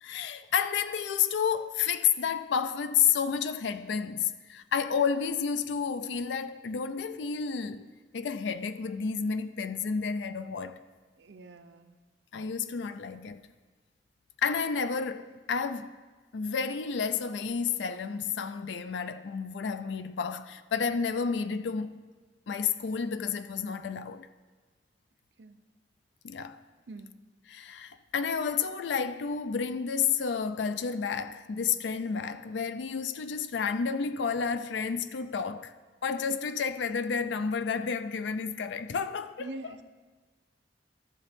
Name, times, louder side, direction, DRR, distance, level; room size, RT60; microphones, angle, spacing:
voice 1, 0.0-10.8 12.3-13.4 14.4-16.0 16.3-22.0 22.5-24.3 26.2-26.6 27.5-35.7 36.0-39.8, left 6 dB, 75° left, 0.4 m, -31 dB
voice 2, 11.2-11.9 25.4-25.6 26.9-27.1 39.4-39.8, right 2 dB, 75° right, 0.6 m, -44 dB
14.5 x 6.7 x 3.5 m
head